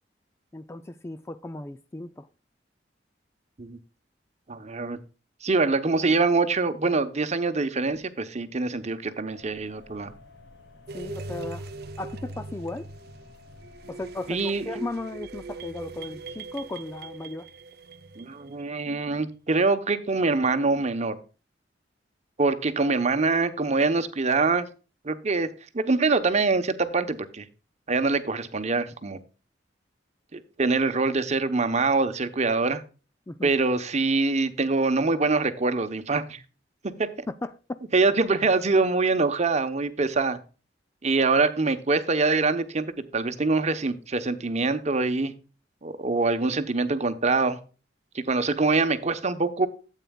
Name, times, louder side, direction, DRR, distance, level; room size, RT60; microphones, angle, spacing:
voice 1, 0.5-2.3 10.9-11.6 12.0-12.9 13.9-17.5 33.3-33.5 37.3-37.8, left 2 dB, 15° left, 0.4 m, -36 dB
voice 2, 4.5-5.0 5.4-10.1 14.3-14.6 18.2-21.2 22.4-24.7 25.0-25.5 25.7-27.4 27.9-29.2 30.3-32.8 33.4-36.4 37.0-37.1 37.9-40.4 41.0-45.3 45.8-47.6 48.1-49.7, right 3 dB, 40° right, 0.9 m, -24 dB
sound 1, 9.3-14.3, left 2 dB, 90° left, 5.2 m, -51 dB
sound 2, 10.9-18.9, right 3 dB, 60° right, 0.6 m, -40 dB
12.5 x 8.3 x 2.3 m
head